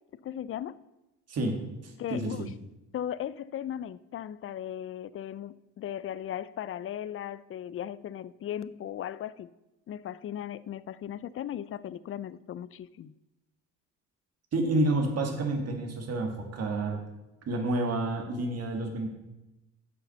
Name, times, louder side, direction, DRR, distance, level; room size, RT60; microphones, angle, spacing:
voice 1, 0.2-0.8 2.0-2.7 2.9-9.5 9.9-13.1, left 10 dB, 45° left, 18 dB, 0.4 m, -37 dB
voice 2, 1.8-2.5 14.5-17.0 17.5-19.1, right 2 dB, 55° right, 3 dB, 1.9 m, -29 dB
8.1 x 5.6 x 6.5 m, 0.97 s
cardioid pair, 90°, 30 cm